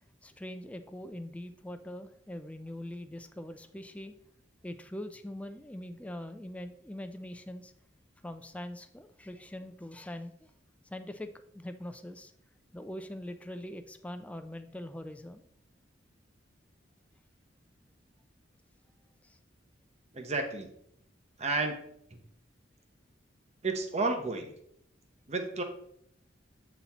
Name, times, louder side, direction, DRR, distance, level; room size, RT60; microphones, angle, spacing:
voice 1, 0.2-4.1 4.6-7.7 8.2-10.5 10.9-11.3 11.5-12.3 12.7-15.4 19.2-19.4, left 1 dB, 5° left, 8 dB, 0.4 m, -42 dB
voice 2, 20.1-20.7 21.4-21.8 23.6-24.5 25.3-25.6, right 3 dB, 35° right, 5 dB, 0.9 m, -31 dB
8.2 x 4.1 x 4.3 m, 0.71 s
head